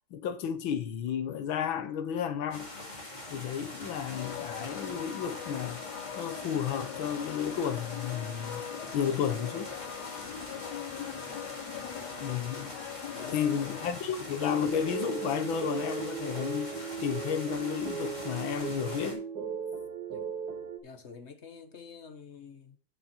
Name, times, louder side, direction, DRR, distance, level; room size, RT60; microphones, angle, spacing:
voice 1, 0.1-2.7 3.3-5.8 6.2-8.6 8.9-9.7 12.2-12.8 13.3-16.7 17.0-19.3, left 8 dB, 80° left, 1.8 m, -32 dB
sound 1, 2.5-19.1, left 1 dB, 20° left, 2.6 m, -43 dB
sound 2, 4.1-13.9, left 9 dB, 60° left, 1.3 m, -41 dB
voice 2, 11.0-11.9 13.1-13.9 20.1-20.3 20.8-22.8, left 5 dB, 40° left, 1.3 m, -48 dB
sound 3, 14.4-20.8, right 6 dB, 55° right, 1.7 m, -37 dB
9.4 x 7.4 x 4.3 m
omnidirectional pair, 2.2 m